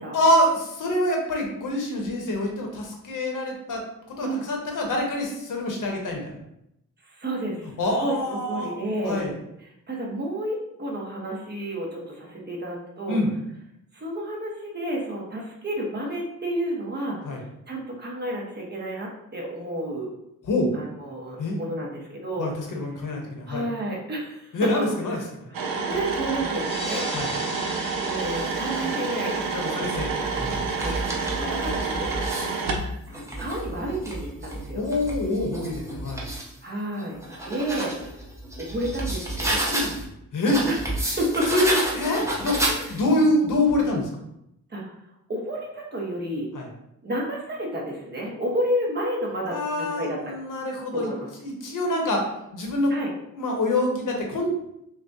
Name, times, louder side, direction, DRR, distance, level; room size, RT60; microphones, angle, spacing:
voice 1, 0.1-3.8 4.1-6.3 7.8-8.7 9.0-9.3 13.1-13.3 17.2-17.4 20.5-20.7 21.4-21.6 22.4-23.6 24.5-25.5 27.1-27.3 29.5-30.1 30.4-30.6 34.7-36.2 39.7-39.9 40.3-40.6 41.5-44.1 46.5-46.7 49.5-51.1 51.4-52.2 52.5-52.9 53.3-54.5, left 1 dB, 65° left, 1 dB, 1.1 m, -25 dB
voice 2, 7.1-7.7 8.0-9.2 9.6-13.2 13.9-17.2 17.7-20.1 20.7-22.5 23.5-25.2 25.5-27.1 28.0-30.1 30.8-31.0 31.4-32.1 33.1-34.8 36.6-37.2 37.4-37.9 38.6-39.6 40.6-41.8 42.6-42.9 44.7-45.0 45.3-46.5 47.0-50.3 50.9-51.3 52.9-53.1, right 1 dB, 30° right, -3 dB, 1.2 m, -31 dB
sound 1, 25.5-32.9, right 4 dB, 80° right, 0.7 m, -28 dB
sound 2, 26.5-31.6, left 1 dB, 15° left, 0.9 m, -39 dB
sound 3, 28.2-29.0 29.7-32.6 33.1-36.5 37.0-40.1 40.5-43.2, right 1 dB, 10° right, 0.8 m, -31 dB
6.0 x 2.3 x 2.7 m, 0.81 s
wide cardioid pair, 125°, 33 cm